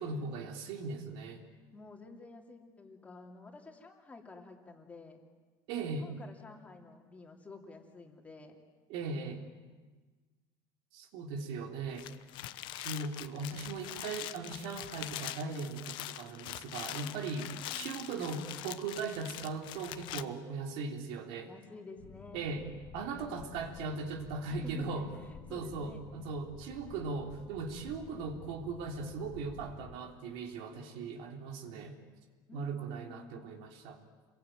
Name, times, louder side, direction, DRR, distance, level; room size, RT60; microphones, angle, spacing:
voice 1, 0.0-1.5 5.7-6.1 8.9-9.4 10.9-12.1 12.7-17.5 17.7-21.5 22.3-22.7 22.9-25.1 25.5-31.9 32.5-34.0, right 4 dB, 70° right, 4 dB, 3.5 m, -39 dB
voice 2, 1.7-5.2 5.8-8.6 17.0-18.0 21.4-22.5 24.6-26.0 32.5-33.5, left 3 dB, 15° left, 2 dB, 2.9 m, -51 dB
sound 1, 11.8-20.2, left 15 dB, 60° left, 1.1 m, -43 dB
Boat Water vehicle, 22.0-30.0, left 6 dB, 40° left, 1.8 m, -52 dB
27.5 x 22.0 x 9.2 m, 1.4 s
cardioid pair, 155°, 10 cm